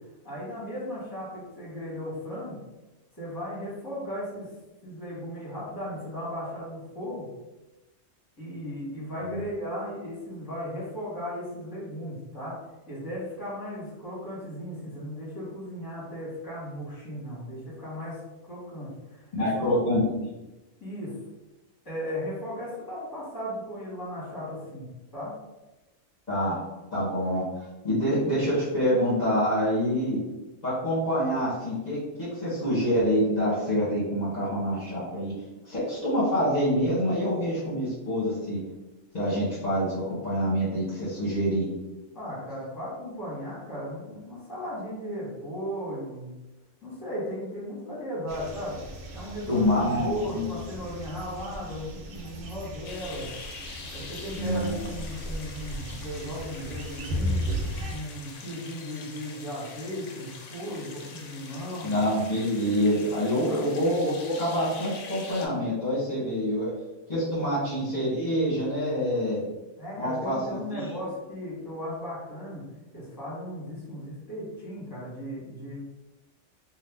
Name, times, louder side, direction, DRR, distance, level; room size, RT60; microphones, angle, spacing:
voice 1, 0.2-2.6 3.2-4.5 4.8-7.3 8.4-12.5 12.9-18.2 18.4-19.8 20.8-21.1 21.8-24.8 25.1-25.3 42.1-46.3 46.8-48.8 49.1-53.3 53.9-57.5 57.9-61.9 63.4-63.6 67.4-67.6 69.8-72.6 72.9-75.8, equal, 15° left, -7 dB, 1.3 m, -36 dB
voice 2, 19.3-20.3 26.3-26.6 26.9-30.2 30.6-35.3 35.6-38.6 39.1-41.7 49.5-50.4 54.4-54.8 61.8-66.7 67.1-69.4 70.0-70.9, equal, 35° left, -11 dB, 1.1 m, -26 dB
sound 1, 48.3-58.0, equal, 60° right, 0.8 m, -36 dB
sound 2, 52.8-65.5, left 4 dB, 75° left, 0.9 m, -44 dB
2.7 x 2.4 x 3.5 m, 1.0 s
omnidirectional pair, 1.3 m